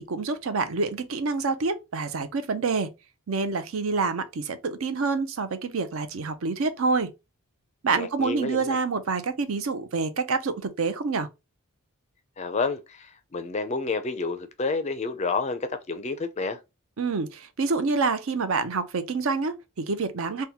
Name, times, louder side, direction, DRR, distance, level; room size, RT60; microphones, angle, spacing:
voice 1, 0.1-2.9 3.3-7.1 7.8-11.3 17.0-20.4, right 4 dB, 65° right, 0.5 m, -27 dB
voice 2, 7.9-8.8 12.4-16.6, left 4 dB, 30° left, 0.4 m, -29 dB
3.5 x 2.2 x 2.8 m
head